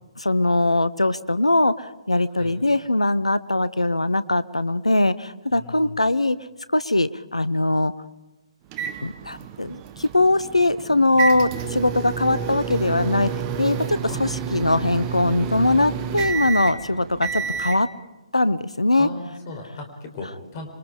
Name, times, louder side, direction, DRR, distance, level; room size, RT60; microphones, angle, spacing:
voice 1, 0.2-6.4 6.7-7.9 9.0-13.3 13.6-17.9 18.3-19.1, left 2 dB, 85° left, 16 dB, 0.8 m, -21 dB
voice 2, 5.5-6.0 14.1-14.2 19.0-20.7, left 2 dB, 35° left, 4 dB, 4.6 m, -36 dB
sound 1, 8.7-17.8, right 7 dB, 25° right, 1.1 m, -30 dB
26.5 x 22.5 x 5.0 m, 1.0 s
figure-of-eight pair, 135°, 3 cm